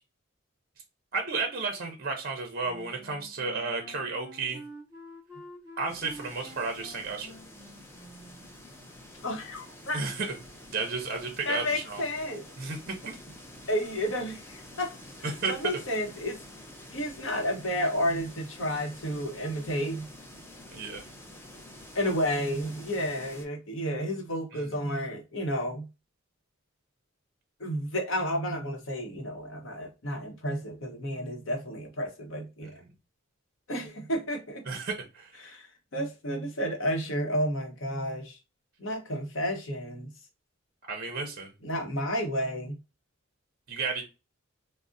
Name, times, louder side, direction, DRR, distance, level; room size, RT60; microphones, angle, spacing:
voice 1, 1.1-4.6 5.8-7.3 9.9-10.4 10.7-12.0 12.6-13.4 15.4-15.5 20.7-21.0 24.5-24.7 34.7-35.5 40.9-41.5 43.7-44.0, right 4 dB, 45° right, 0.5 m, -33 dB
Wind instrument woodwind instrument, 2.6-8.5, equal, 20° right, 0.8 m, -48 dB
sound 1, 5.9-23.5, left 1 dB, 10° left, 0.4 m, -48 dB
voice 2, 9.2-10.0 11.5-12.5 13.7-14.9 15.2-16.4 16.9-20.1 21.9-25.9 27.6-32.8 33.7-34.6 35.4-38.4 38.8-40.1 41.6-42.8, equal, 65° left, 0.8 m, -31 dB
3.6 x 2.0 x 2.5 m
head